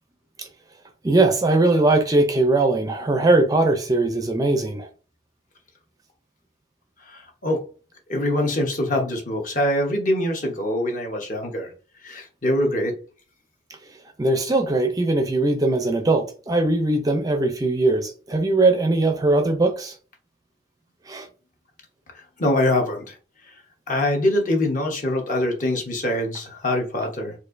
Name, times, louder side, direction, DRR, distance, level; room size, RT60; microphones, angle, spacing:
voice 1, 1.0-4.9 14.2-19.9 21.1-21.3, right 2 dB, 20° right, 0.4 m, -20 dB
voice 2, 7.1-7.7 8.1-11.7 12.0-13.0 22.4-23.2 23.5-23.6 23.9-27.3, left 1 dB, 45° left, 0.9 m, -24 dB
4.3 x 2.5 x 2.5 m
head